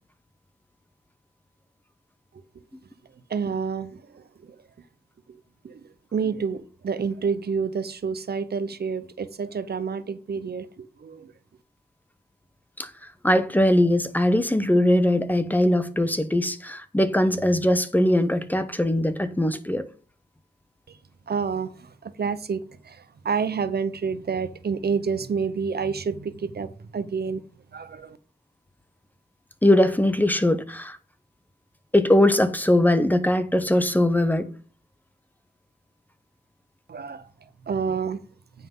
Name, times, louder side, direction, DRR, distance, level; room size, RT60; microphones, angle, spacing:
voice 1, 3.3-4.2 5.6-5.8 6.1-11.3 20.9-21.0 21.3-27.4 27.7-28.2 36.9-37.3 37.7-38.2, right 5 dB, 65° right, 0.8 m, -29 dB
voice 2, 13.2-19.8 29.6-31.0 31.9-34.5, left 1 dB, 10° left, 0.9 m, -21 dB
9.3 x 5.7 x 5.5 m
wide cardioid pair, 105°, 18 cm